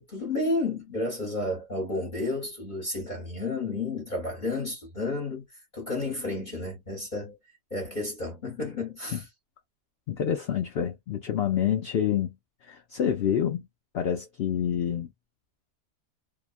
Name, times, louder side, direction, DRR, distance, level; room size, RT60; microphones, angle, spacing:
voice 1, 0.0-7.3 7.7-9.2, left 2 dB, 35° left, 1.0 m, -31 dB
voice 2, 10.1-12.3 12.7-13.7 13.9-15.1, left 9 dB, 65° left, 0.6 m, -27 dB
2.8 x 2.2 x 2.4 m
omnidirectional pair, 1.5 m